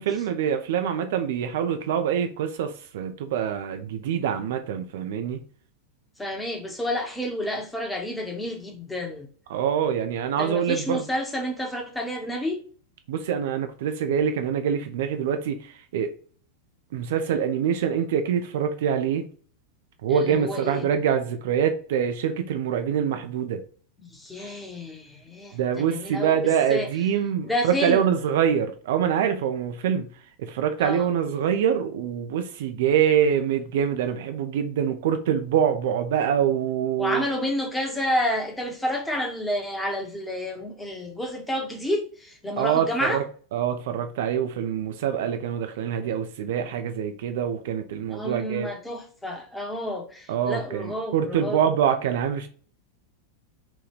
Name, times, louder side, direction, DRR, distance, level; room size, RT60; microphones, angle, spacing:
voice 1, 0.0-5.4 9.5-11.0 13.1-16.1 16.9-19.2 20.0-23.6 24.4-24.5 25.5-30.1 30.4-37.2 42.6-43.2 43.5-48.7 50.3-52.5, right 8 dB, 55° right, 0.4 m, -25 dB
voice 2, 6.2-9.3 10.4-12.6 20.1-20.9 24.1-26.3 26.7-26.9 27.4-28.1 30.8-31.1 37.0-43.2 48.1-51.6, left 1 dB, 5° left, 0.8 m, -30 dB
3.0 x 2.2 x 3.3 m
figure-of-eight pair, 90°, 0 cm